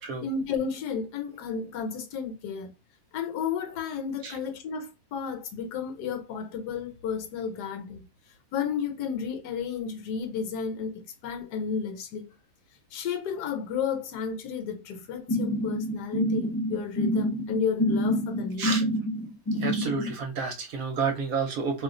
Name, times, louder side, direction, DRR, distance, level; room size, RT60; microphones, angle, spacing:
voice 1, 0.2-2.7 3.1-8.1 8.5-12.3 12.9-18.7, left 6 dB, 75° left, 1.2 m, -32 dB
sound 1, 15.3-20.1, equal, 25° left, 0.7 m, -27 dB
voice 2, 19.6-21.8, right 5 dB, 65° right, 1.0 m, -30 dB
2.7 x 2.3 x 3.7 m
omnidirectional pair, 1.8 m